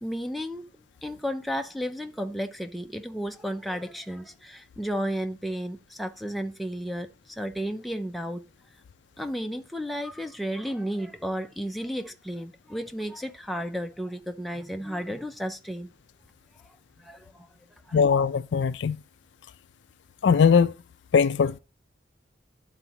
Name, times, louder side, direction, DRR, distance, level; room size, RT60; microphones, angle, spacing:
voice 1, 0.0-0.6 1.0-8.4 9.2-15.9 17.0-17.5 17.9-18.0, equal, ahead, 0.5 m, -33 dB
voice 2, 17.9-19.0 20.2-20.7 21.1-21.6, left 6 dB, 70° left, 0.4 m, -20 dB
11.5 x 4.0 x 2.8 m
head